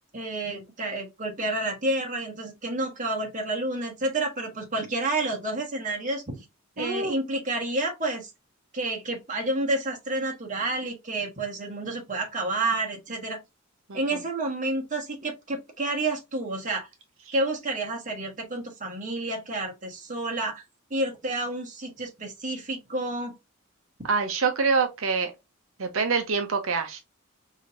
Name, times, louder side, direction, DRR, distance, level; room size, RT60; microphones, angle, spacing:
voice 1, 0.1-6.4 6.8-8.3 8.7-13.4 13.9-16.9 17.3-20.6 20.9-23.3, right 2 dB, 35° right, 1.4 m, -30 dB
voice 2, 6.8-7.2 13.9-14.0 24.1-25.3 25.8-27.0, right 5 dB, 65° right, 0.7 m, -25 dB
5.0 x 2.8 x 2.5 m
head